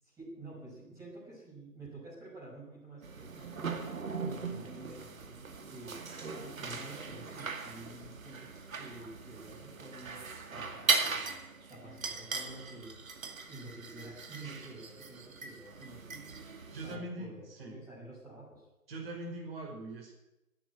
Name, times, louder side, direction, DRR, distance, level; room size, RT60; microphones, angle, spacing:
voice 1, 0.0-3.8 4.1-5.9 6.4-11.4 11.7-12.9 13.5-16.4 16.8-18.7, right 2 dB, 5° right, -6 dB, 6.2 m, -49 dB
sound 1, 3.0-17.0, right 4 dB, 60° right, 2.2 m, -38 dB
voice 2, 16.7-17.7 18.9-20.2, right 2 dB, 40° right, 1 dB, 5.2 m, -42 dB
15.5 x 9.3 x 9.8 m, 0.93 s
figure-of-eight pair, 150°, 46 cm